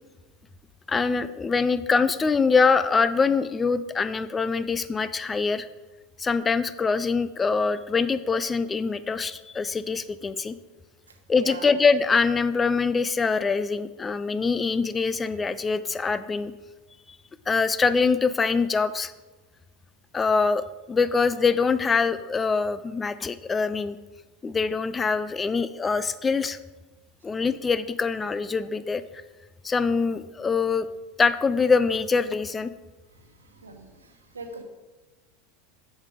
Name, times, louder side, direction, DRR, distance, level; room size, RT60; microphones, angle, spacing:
voice 1, 0.9-5.7 6.2-10.6 11.3-16.5 17.5-19.1 20.1-24.0 24.4-26.6 27.2-29.0 29.6-30.9 31.2-32.7, left 4 dB, 20° left, 13 dB, 0.4 m, -24 dB
voice 2, 33.5-34.6, right 3 dB, 80° right, 5 dB, 1.0 m, -41 dB
7.2 x 6.6 x 5.0 m, 1.2 s
figure-of-eight pair, 80°, 0 cm